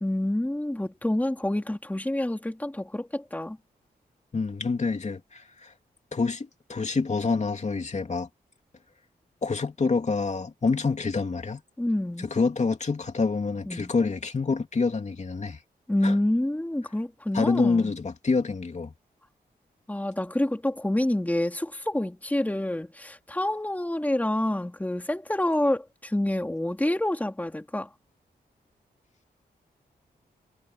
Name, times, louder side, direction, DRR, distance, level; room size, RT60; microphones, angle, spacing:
voice 1, 0.0-3.6 11.8-12.3 13.7-13.9 15.9-17.9 19.9-27.9, left 1 dB, 10° left, 2.4 m, -27 dB
voice 2, 4.3-5.7 6.1-8.3 9.4-11.6 12.2-15.6 16.0-16.2 17.3-18.9, left 4 dB, 45° left, 2.7 m, -27 dB
cardioid pair, 75°, 17 cm